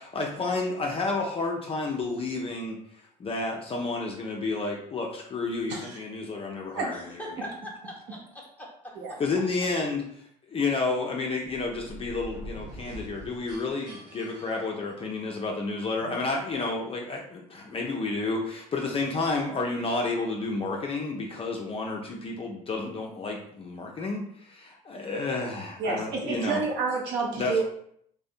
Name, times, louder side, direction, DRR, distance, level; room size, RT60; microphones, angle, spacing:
voice 1, 0.0-2.8 3.2-7.3 9.2-26.6 27.3-27.6, left 3 dB, 25° left, 0 dB, 0.5 m, -31 dB
voice 2, 6.8-9.2, equal, 10° left, -3 dB, 0.9 m, -42 dB
sound 1, 11.4-15.4, equal, 80° right, 0.9 m, -44 dB
voice 3, 25.8-27.6, right 4 dB, 55° right, 0 dB, 0.7 m, -29 dB
2.6 x 2.1 x 2.4 m, 0.66 s
hypercardioid pair, 70°, 21 cm